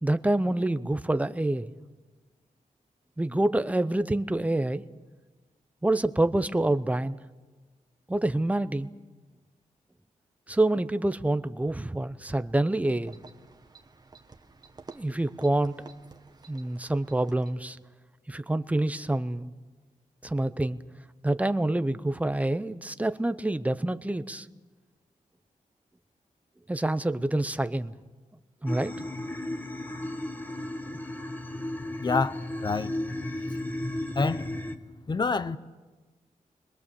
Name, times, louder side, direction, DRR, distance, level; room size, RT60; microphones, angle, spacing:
voice 1, 0.0-1.7 3.2-4.8 5.8-7.2 8.1-8.9 10.5-13.2 14.9-15.8 16.5-17.8 18.3-19.5 20.2-20.8 21.2-24.5 26.7-27.9 28.6-29.0, right 1 dB, 10° right, 0.7 m, -27 dB
sound 1, 12.9-17.7, right 4 dB, 30° right, 1.4 m, -51 dB
sound 2, 28.7-34.8, left 1 dB, 10° left, 1.2 m, -34 dB
voice 2, 32.0-33.0 33.5-33.6 34.1-34.5 35.1-35.6, left 4 dB, 30° left, 0.8 m, -27 dB
29.0 x 22.5 x 7.0 m
wide cardioid pair, 150°, 14 cm